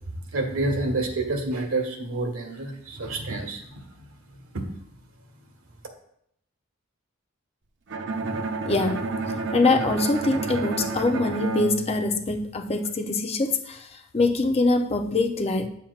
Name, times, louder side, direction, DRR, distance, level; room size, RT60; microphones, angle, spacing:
voice 1, 0.3-3.9 4.5-4.6, right 2 dB, 80° right, 2 dB, 1.4 m, -28 dB
Bowed string instrument, 7.9-12.8, right 3 dB, 55° right, 0.7 m, -30 dB
voice 2, 8.7-9.0 9.5-13.9 14.1-15.7, left 3 dB, 30° left, 5 dB, 0.5 m, -23 dB
8.6 x 7.2 x 2.4 m, 0.72 s
head